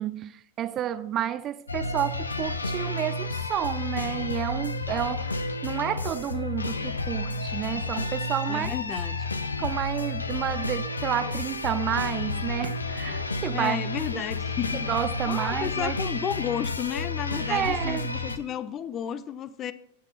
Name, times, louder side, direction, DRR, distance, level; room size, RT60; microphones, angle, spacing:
voice 1, 0.0-8.7 9.6-13.8 14.1-14.2 14.7-16.0 17.5-18.1, right 11 dB, 30° right, 0.5 m, -30 dB
sound 1, 1.7-18.4, left 3 dB, 80° left, 0.9 m, -31 dB
voice 2, 8.5-9.3 13.5-14.8 15.2-19.7, left 9 dB, 30° left, 0.7 m, -32 dB
15.5 x 8.0 x 4.2 m
figure-of-eight pair, 90°, 0 cm